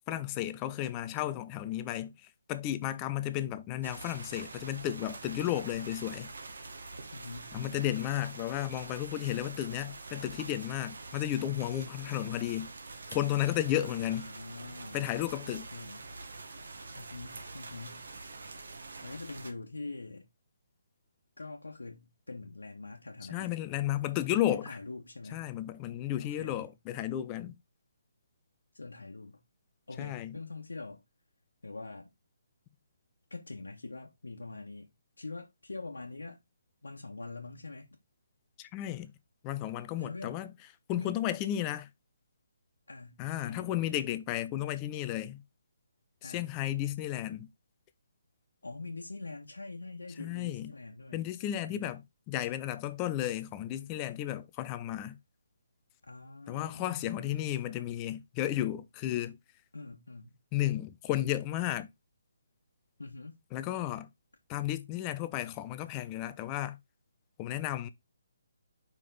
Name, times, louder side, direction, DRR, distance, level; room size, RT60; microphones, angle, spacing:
voice 1, 0.1-2.1 2.5-6.3 7.5-12.7 13.1-14.3 14.9-15.7 23.3-24.8 25.3-27.5 30.0-30.3 38.6-39.1 39.4-40.5 40.9-41.9 43.2-45.4 46.2-47.5 50.2-50.7 51.1-52.0 52.3-55.2 56.5-59.4 60.5-61.9 63.5-64.1 64.5-66.8 67.4-67.9, left 13 dB, 25° left, 0.7 m, -33 dB
sound 1, 3.8-19.5, right 3 dB, 65° right, 1.3 m, -45 dB
voice 2, 7.1-7.9 13.8-15.1 15.4-16.1 16.9-18.1 19.0-20.3 21.4-23.5 24.4-25.5 26.2-26.7 28.7-29.4 29.9-31.0 31.6-32.1 33.3-34.9 35.2-36.4 36.8-38.0 40.0-40.5 40.9-41.2 42.9-43.9 46.2-46.5 48.6-51.3 51.7-52.0 56.0-57.5 59.7-60.3 63.0-63.4, left 3 dB, 75° left, 1.4 m, -44 dB
5.6 x 4.6 x 3.9 m
figure-of-eight pair, 140°, 0 cm